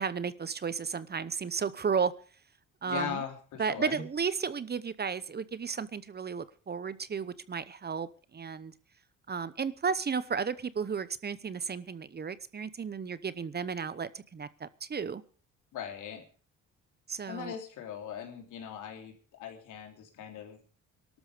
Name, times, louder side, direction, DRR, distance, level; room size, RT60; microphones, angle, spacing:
voice 1, 0.0-2.1 2.8-3.2 3.6-8.7 9.3-15.2 17.1-17.5, right 6 dB, 35° right, 16 dB, 0.9 m, -33 dB
voice 2, 2.9-4.0 15.7-16.2 17.3-20.6, left 8 dB, 85° left, 4 dB, 3.5 m, -39 dB
18.5 x 12.5 x 5.0 m, 0.41 s
cardioid pair, 90°, 30 cm